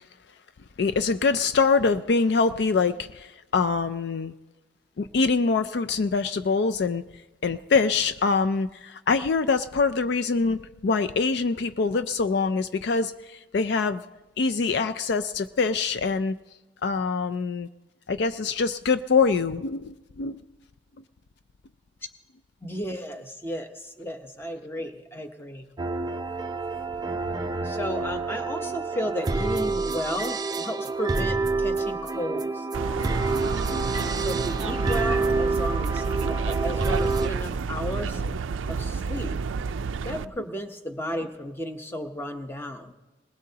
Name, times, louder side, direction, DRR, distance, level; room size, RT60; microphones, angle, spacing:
voice 1, 0.8-4.3 5.0-7.0 7.4-14.0 14.4-16.3 16.8-17.7 18.1-20.4 33.7-33.8 36.2-36.3, left 4 dB, 60° left, 11 dB, 0.4 m, -24 dB
voice 2, 22.6-25.7 27.6-32.7 33.4-33.6 34.2-38.3 38.7-39.3 40.0-42.9, equal, 10° left, 5 dB, 0.9 m, -33 dB
sound 1, 25.8-37.3, right 3 dB, 20° right, 0.4 m, -28 dB
sound 2, 32.7-40.3, right 5 dB, 80° right, 0.4 m, -29 dB
21.0 x 20.0 x 2.8 m, 1.1 s
head